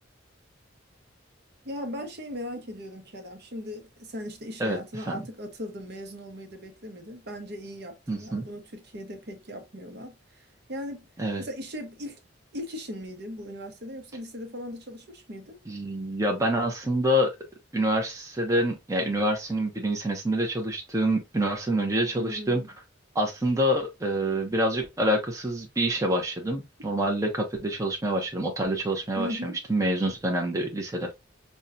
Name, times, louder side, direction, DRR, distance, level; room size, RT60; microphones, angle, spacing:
voice 1, 1.6-11.1 11.4-12.2 12.5-15.6 22.1-22.7 29.1-29.6, equal, 55° right, 0.9 m, -38 dB
voice 2, 8.1-8.4 11.2-11.4 15.7-17.4 17.7-22.6 23.1-31.1, right 1 dB, 15° right, 0.6 m, -26 dB
5.3 x 2.2 x 2.5 m
head